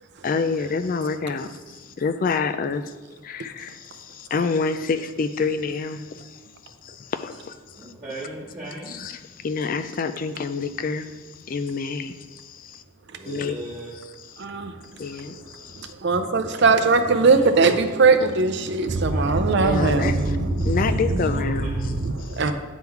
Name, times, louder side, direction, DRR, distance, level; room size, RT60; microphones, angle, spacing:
voice 1, 0.2-2.9 3.2-7.9 8.9-12.8 13.3-13.6 15.0-15.9 19.6-20.4 20.6-21.7 22.2-22.5, left 4 dB, 40° left, 0.3 m, -28 dB
voice 2, 7.7-8.9 13.1-14.0 16.4-17.4 18.9-20.3 21.0-21.9, right 1 dB, 20° right, 1.6 m, -39 dB
voice 3, 16.0-20.5 21.0-21.4 21.8-22.1 22.4-22.5, right 4 dB, 55° right, 0.5 m, -20 dB
9.0 x 3.7 x 4.6 m
head